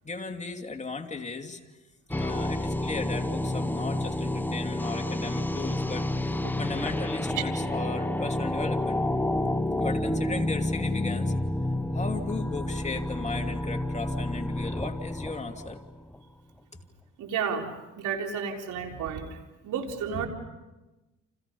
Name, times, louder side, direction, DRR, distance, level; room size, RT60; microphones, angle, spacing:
voice 1, 0.0-1.7 2.1-9.0 9.8-11.3 11.9-15.8, left 3 dB, 25° left, 4 dB, 2.7 m, -36 dB
sound 1, 2.1-16.2, left 1 dB, 5° left, 1.1 m, -29 dB
voice 2, 17.2-17.7 18.0-19.3 19.6-20.3, right 7 dB, 80° right, 2 dB, 4.1 m, -31 dB
29.5 x 29.0 x 5.5 m, 1.1 s
cardioid pair, 90°, 30 cm